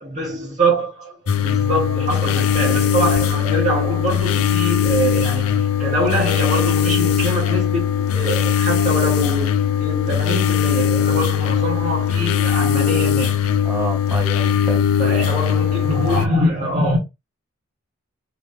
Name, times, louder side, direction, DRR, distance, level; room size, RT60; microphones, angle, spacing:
voice 1, 0.0-13.5 15.0-17.0, right 1 dB, 35° right, 2.0 m, -24 dB
sound 1, 1.3-16.3, left 9 dB, 85° left, 0.4 m, -19 dB
voice 2, 13.6-14.8, right 2 dB, 15° right, 0.6 m, -28 dB
3.9 x 3.2 x 2.9 m
head